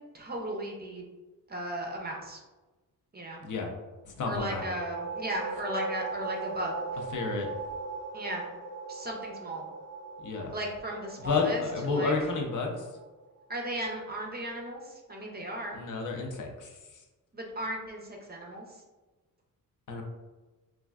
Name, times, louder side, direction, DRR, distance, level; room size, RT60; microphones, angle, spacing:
voice 1, 0.1-1.0 1.5-2.4 3.1-3.4 4.2-6.8 8.1-8.5 8.9-9.7 10.5-12.1 13.5-15.8 17.3-18.8, right 1 dB, 30° right, 0 dB, 0.4 m, -36 dB
voice 2, 4.0-4.6 7.1-7.5 10.2-10.5 11.2-12.9 15.7-17.0 19.9-20.0, left 4 dB, 60° left, 1 dB, 0.5 m, -31 dB
sound 1, 4.2-13.6, right 4 dB, 85° right, 0.5 m, -39 dB
3.2 x 2.4 x 2.3 m, 1.2 s
wide cardioid pair, 130°, 36 cm